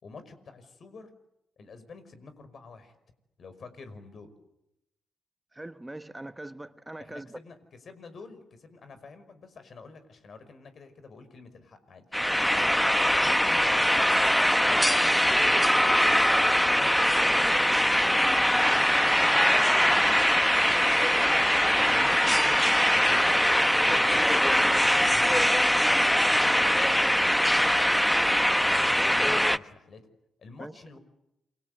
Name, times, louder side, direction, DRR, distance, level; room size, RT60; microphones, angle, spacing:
voice 1, 0.0-1.1 1.6-2.9 3.4-4.3 7.0-12.2 12.5-14.1 14.7-21.1 21.5-22.6 22.9-25.5 25.8-27.2 28.6-30.1 30.4-31.0, left 4 dB, 55° left, 10 dB, 5.4 m, -48 dB
voice 2, 5.5-7.3 30.6-30.7, right 1 dB, 15° right, 11 dB, 1.3 m, -41 dB
sound 1, 12.1-29.6, equal, 5° left, 1.0 m, -22 dB
28.5 x 24.0 x 8.2 m, 0.87 s
supercardioid pair, 50°, 0 cm